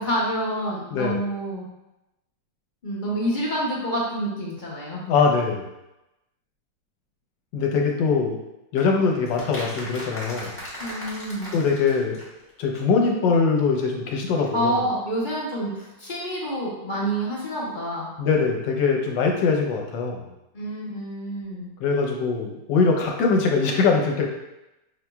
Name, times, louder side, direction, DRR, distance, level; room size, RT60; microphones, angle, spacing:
voice 1, 0.0-1.6 2.8-5.1 10.8-11.5 14.5-18.1 20.5-21.7, right 1 dB, 40° left, -5 dB, 0.7 m, -28 dB
voice 2, 0.9-1.2 5.1-5.7 7.5-8.4 8.7-10.6 11.5-12.2 12.6-14.8 18.2-20.2 21.8-24.3, left 4 dB, 80° left, 2 dB, 1.3 m, -22 dB
sound 1, 8.8-12.5 12.7-12.8 13.0-13.1 13.3-13.4, equal, 10° left, 1.0 m, -38 dB
5.6 x 2.9 x 2.2 m, 0.92 s
omnidirectional pair, 2.0 m